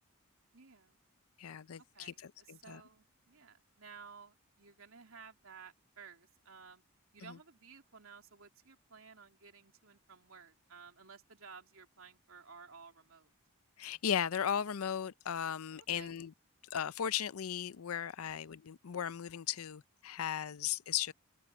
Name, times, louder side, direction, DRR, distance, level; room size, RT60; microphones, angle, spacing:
voice 1, 0.5-1.0 1.9-6.8 7.1-13.3 15.8-16.1, right 5 dB, 75° right, 3.0 m, -55 dB
voice 2, 1.4-2.8 7.2-7.4 13.8-16.3 16.7-21.1, left 9 dB, 85° left, 0.5 m, -37 dB
head